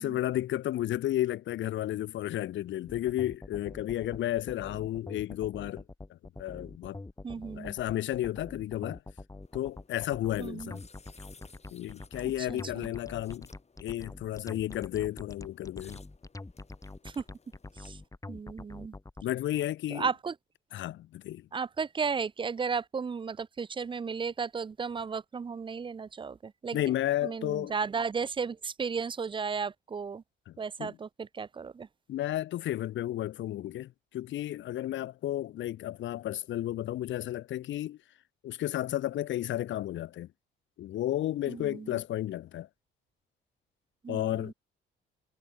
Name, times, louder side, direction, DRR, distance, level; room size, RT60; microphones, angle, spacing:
voice 1, 0.0-5.8 6.1-7.0 7.6-9.0 9.5-10.8 11.7-13.5 13.8-16.0 19.2-20.1 20.7-21.5 26.7-27.7 30.5-30.6 30.8-30.9 32.1-38.0 38.4-40.3 40.8-42.7 44.1-44.5, left 13 dB, 70° left, 0.9 m, -32 dB
sound 1, 2.9-19.2, left 2 dB, 15° left, 4.7 m, -45 dB
voice 2, 7.2-7.7 10.4-10.7 12.4-12.9 17.0-17.2 17.8-18.0 18.3-18.9 19.9-20.3 21.5-26.8 27.2-30.2 30.6-31.9 41.5-42.0 44.0-44.5, right 5 dB, 25° right, 0.5 m, -34 dB
sound 2, 9.4-18.1, left 4 dB, 35° left, 7.1 m, -60 dB
cardioid pair, 90°, 20 cm